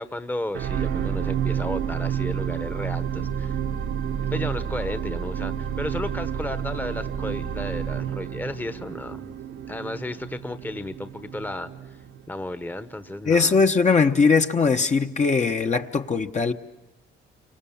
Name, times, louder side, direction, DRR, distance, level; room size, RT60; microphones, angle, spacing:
voice 1, 0.0-3.6 4.3-9.2 9.7-11.7 12.3-13.6, left 1 dB, 10° left, 11 dB, 1.1 m, -33 dB
sound 1, 0.5-12.9 13.5-13.6, right 8 dB, 75° right, 1.4 m, -30 dB
voice 2, 13.3-16.5, left 4 dB, 35° left, 5 dB, 1.1 m, -20 dB
29.5 x 24.5 x 7.2 m, 1.0 s
cardioid pair, 90°, 20 cm